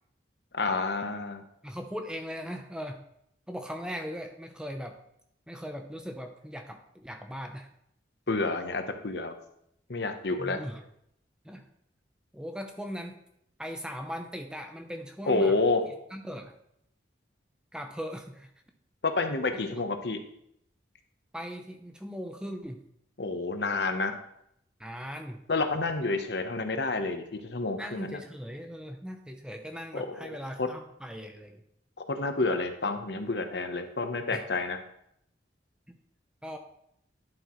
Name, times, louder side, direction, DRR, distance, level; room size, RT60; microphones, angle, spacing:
voice 1, 0.5-1.4 8.3-9.3 9.9-10.6 15.3-15.8 19.0-20.2 23.2-24.2 25.5-28.2 29.9-30.3 30.6-30.7 32.1-34.8, left 3 dB, 65° left, 6 dB, 0.9 m, -29 dB
voice 2, 1.6-3.0 3.5-5.0 5.5-7.7 8.3-8.5 10.4-10.8 11.4-11.7 12.3-13.2 13.6-15.6 16.1-16.5 17.7-18.5 19.5-19.7 21.3-22.8 24.8-25.4 27.8-31.6 34.3-34.4 36.4-36.6, equal, 5° right, 4 dB, 0.6 m, -39 dB
11.0 x 7.8 x 3.1 m, 0.74 s
head